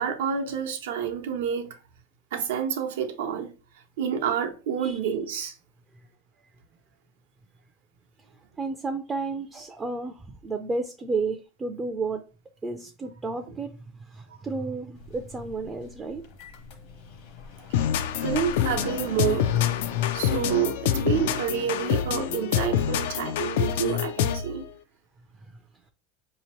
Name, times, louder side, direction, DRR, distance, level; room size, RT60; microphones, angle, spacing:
voice 1, 0.0-1.8 2.3-3.5 4.0-5.5 17.9-19.5 20.1-24.7, right 8 dB, 90° right, 0.8 m, -28 dB
voice 2, 8.6-12.2 12.6-16.2 25.4-25.5, right 3 dB, 15° right, 0.4 m, -32 dB
sound 1, 15.0-20.5, left 5 dB, 60° left, 0.9 m, -44 dB
sound 2, 17.7-24.6, left 9 dB, 75° left, 0.3 m, -26 dB
4.8 x 2.8 x 3.0 m
supercardioid pair, 145°, 0 cm